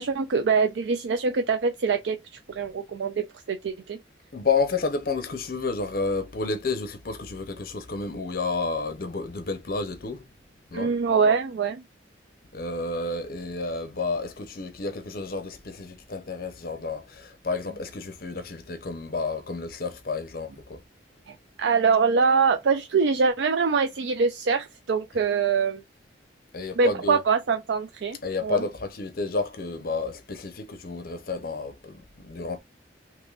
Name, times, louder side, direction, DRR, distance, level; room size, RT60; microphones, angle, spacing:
voice 1, 0.0-2.2 2.5-4.0 10.7-11.8 21.3-25.8 26.7-28.6, right 5 dB, 80° right, 0.4 m, -24 dB
voice 2, 4.3-10.2 10.7-10.9 12.5-20.8 26.5-27.2 28.2-32.0 32.2-32.6, left 4 dB, 55° left, 0.6 m, -30 dB
3.5 x 2.9 x 2.3 m
head